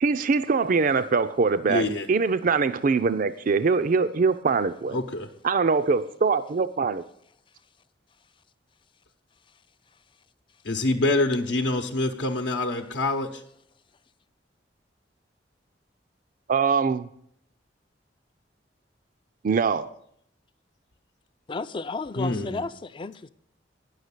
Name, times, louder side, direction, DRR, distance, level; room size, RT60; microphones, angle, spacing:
voice 1, 0.0-5.0 5.4-7.0 16.5-17.1 19.4-19.9, right 4 dB, 45° right, 0.4 m, -23 dB
voice 2, 1.7-2.1 4.9-5.3 10.6-13.4 22.2-22.6, left 2 dB, 75° left, 0.9 m, -26 dB
voice 3, 21.5-23.3, left 3 dB, 30° left, 0.4 m, -33 dB
9.4 x 6.5 x 8.2 m
head